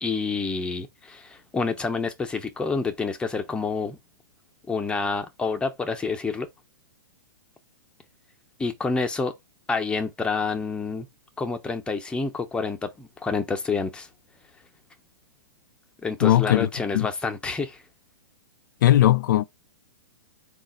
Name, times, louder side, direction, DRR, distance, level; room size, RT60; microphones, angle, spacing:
voice 1, 0.0-4.0 4.7-6.5 8.6-9.3 9.7-11.1 11.4-14.1 16.0-17.8, left 4 dB, 10° left, 0.7 m, -28 dB
voice 2, 16.2-16.7 16.9-17.1 18.8-19.4, left 13 dB, 65° left, 0.4 m, -18 dB
4.0 x 2.4 x 3.8 m
hypercardioid pair, 130°, 11 cm